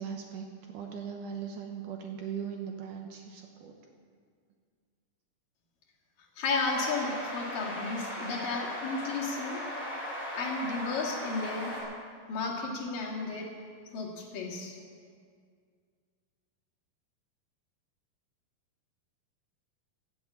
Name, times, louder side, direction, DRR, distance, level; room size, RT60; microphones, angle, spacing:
voice 1, 0.0-3.8, right 7 dB, 70° right, 3 dB, 2.3 m, -39 dB
voice 2, 6.4-9.6 10.3-11.7 12.3-13.5 13.9-14.8, left 3 dB, 65° left, -3 dB, 3.6 m, -33 dB
sound 1, 6.6-11.8, left 1 dB, 20° right, 4.9 m, -38 dB
15.5 x 8.1 x 8.5 m, 2.1 s
omnidirectional pair, 4.4 m